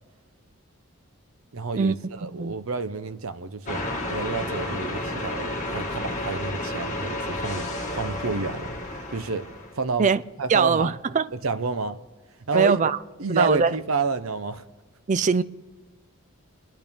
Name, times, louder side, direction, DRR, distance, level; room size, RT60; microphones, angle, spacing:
voice 1, 1.5-3.8 4.1-9.5 9.7-10.1 10.4-10.9 11.3-12.0 12.5-12.8 13.2-14.6, right 4 dB, 70° right, 0.7 m, -29 dB
voice 2, 2.2-2.5 10.0-10.2 10.5-11.3 12.5-13.0 13.4-13.7 15.1-15.4, right 5 dB, 35° right, 0.4 m, -21 dB
sound 1, 3.7-9.8, left 1 dB, 35° left, 1.9 m, -31 dB
28.0 x 10.5 x 3.6 m
head